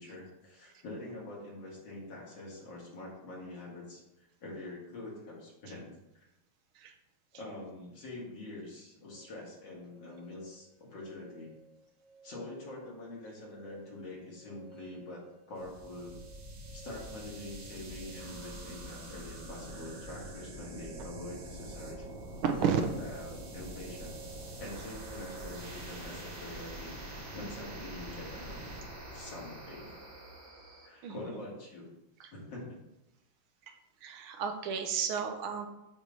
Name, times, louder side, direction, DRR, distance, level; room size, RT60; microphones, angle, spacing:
voice 1, 0.0-5.9 6.1-6.2 7.3-11.5 12.2-15.2 15.5-16.1 16.7-22.0 22.6-24.2 24.6-28.8 29.1-29.9 30.8-31.9 32.3-32.8, left 2 dB, 60° left, -4 dB, 2.5 m, -45 dB
sound 1, 9.1-25.6, right 5 dB, 25° right, 1.1 m, -55 dB
sound 2, 15.5-30.9, right 1 dB, 55° right, 1.7 m, -45 dB
voice 2, 22.4-22.8 31.0-31.1 32.2-32.3 34.0-35.7, right 7 dB, 75° right, 5 dB, 1.5 m, -31 dB
7.2 x 3.2 x 5.2 m, 0.89 s
omnidirectional pair, 2.3 m